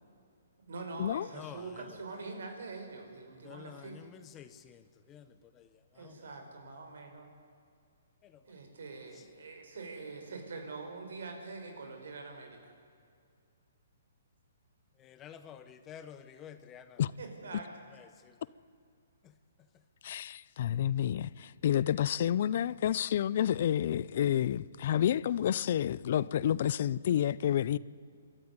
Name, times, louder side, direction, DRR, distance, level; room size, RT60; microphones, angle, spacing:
voice 1, 0.6-4.1 5.9-7.3 8.5-12.7 17.2-17.7, right 3 dB, 70° right, 5.2 m, -44 dB
voice 2, 3.4-4.8 5.1-5.2 5.6-5.7 6.0-6.2 15.0-15.6 15.9-17.0, left 9 dB, 15° left, 0.8 m, -49 dB
voice 3, 20.0-27.8, left 10 dB, 45° left, 0.5 m, -29 dB
25.5 x 13.5 x 9.6 m
hypercardioid pair, 165°, 0 cm